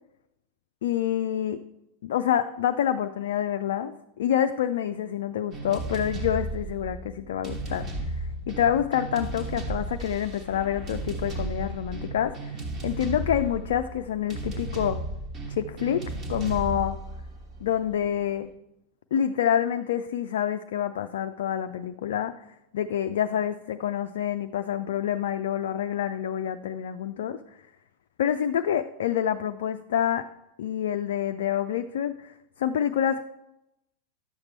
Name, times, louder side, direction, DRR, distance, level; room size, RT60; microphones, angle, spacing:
voice 1, 0.8-1.6 2.0-8.1 8.5-12.5 12.8-15.0 15.5-16.0 16.3-17.0 17.6-18.5 19.1-22.3 22.7-27.4 28.2-30.3 30.6-33.2, left 10 dB, 60° left, 7 dB, 0.4 m, -27 dB
sound 1, 5.5-18.2, right 2 dB, 30° right, 1.3 m, -34 dB
11.0 x 7.2 x 3.2 m, 0.85 s
figure-of-eight pair, 90°, 0 cm